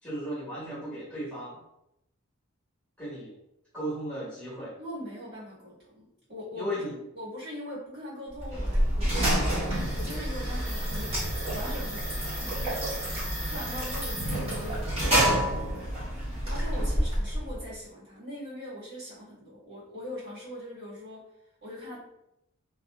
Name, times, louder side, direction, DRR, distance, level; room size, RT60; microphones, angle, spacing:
voice 1, 0.0-1.6 3.0-3.3 3.7-4.7 6.5-7.0 16.8-16.9, equal, 5° left, -10 dB, 1.0 m, -35 dB
voice 2, 4.8-6.7 7.1-9.7 9.9-11.2 11.5-12.9 13.4-15.2 16.5-21.2 21.6-22.0, equal, 50° right, -9 dB, 1.4 m, -41 dB
sound 1, 8.4-17.7, equal, 30° right, 1.0 m, -28 dB
2.5 x 2.4 x 2.2 m, 0.84 s
head